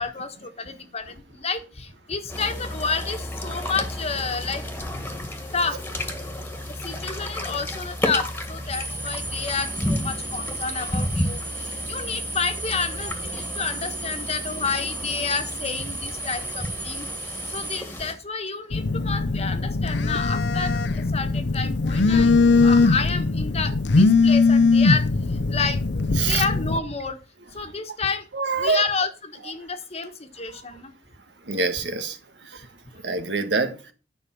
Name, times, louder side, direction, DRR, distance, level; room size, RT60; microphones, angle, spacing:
voice 1, 0.0-5.0 5.5-5.8 6.7-17.1 17.5-22.3 22.6-25.0 25.5-25.8 26.1-27.2 27.5-28.2 28.6-30.9, left 4 dB, 35° left, 7 dB, 1.4 m, -30 dB
sound 1, 2.3-18.1, left 1 dB, 10° left, 1.8 m, -32 dB
sound 2, 8.7-17.8, right 2 dB, 10° right, 1.2 m, -34 dB
Telephone, 18.7-26.8, left 3 dB, 75° left, 0.7 m, -20 dB
voice 2, 28.3-28.8 30.5-30.6 31.4-32.2 32.4-32.6 33.0-33.7, right 4 dB, 80° right, 8 dB, 1.6 m, -25 dB
10.0 x 5.7 x 5.9 m, 0.33 s
head